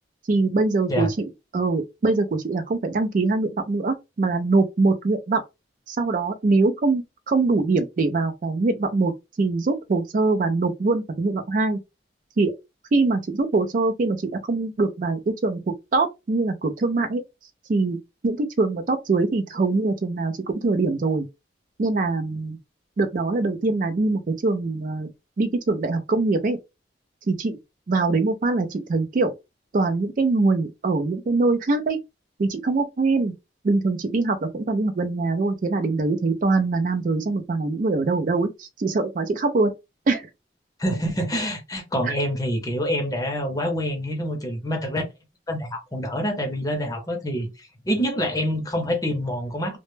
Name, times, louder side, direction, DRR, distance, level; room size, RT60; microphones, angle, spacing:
voice 1, 0.3-5.4 5.9-9.1 9.4-11.8 12.4-12.5 12.9-15.6 15.9-17.2 17.7-18.0 18.2-21.3 21.8-22.6 23.0-25.1 25.4-26.6 27.3-27.6 27.9-29.3 29.7-32.0 32.4-33.3 33.6-39.7 40.1-40.3, right 3 dB, 45° right, 0.4 m, -23 dB
voice 2, 40.8-45.0 45.5-49.8, equal, 20° left, 0.6 m, -26 dB
2.1 x 2.0 x 3.1 m
head